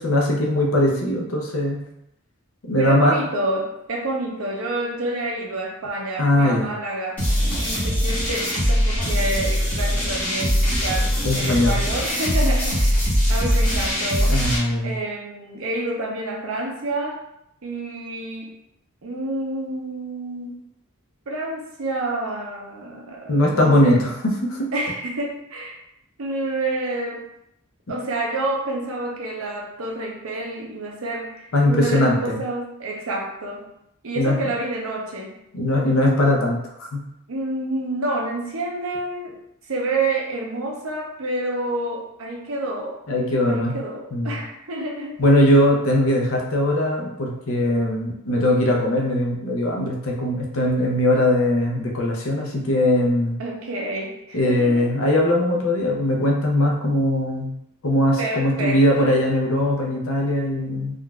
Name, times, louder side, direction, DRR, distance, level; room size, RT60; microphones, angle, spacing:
voice 1, 0.0-1.8 2.7-3.1 6.2-6.7 11.2-11.8 14.3-15.0 23.3-24.7 31.5-32.4 34.2-34.4 35.5-37.0 43.1-43.8 44.1-44.4 45.2-53.4 54.3-57.5 57.8-61.0, left 1 dB, 70° left, 0 dB, 0.7 m, -20 dB
voice 2, 2.8-11.1 11.4-13.0 13.3-14.4 14.8-17.2 17.6-18.5 19.0-20.7 21.3-24.1 24.7-25.8 26.2-27.3 27.9-33.7 34.0-35.4 37.3-39.4 39.7-43.0 43.5-45.2 53.4-54.9 56.6-56.7 58.2-59.2, right 2 dB, 70° right, 0 dB, 0.6 m, -28 dB
sound 1, 7.2-14.6, equal, 5° left, 0.9 m, -21 dB
3.7 x 2.4 x 2.2 m, 0.81 s
head